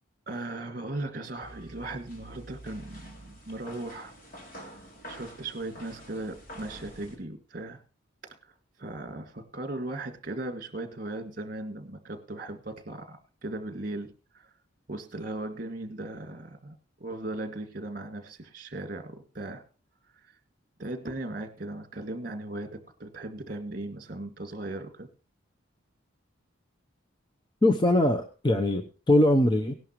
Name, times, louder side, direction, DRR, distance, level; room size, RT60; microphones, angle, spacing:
voice 1, 0.3-4.1 5.1-7.8 8.2-14.5 14.9-19.6 20.8-25.1, right 2 dB, 40° right, 7 dB, 2.2 m, -38 dB
sound 1, 1.4-7.2, equal, 40° left, 3.2 m, -47 dB
voice 2, 27.6-29.7, left 1 dB, 20° left, 5 dB, 0.8 m, -22 dB
18.0 x 11.0 x 3.1 m, 0.36 s
head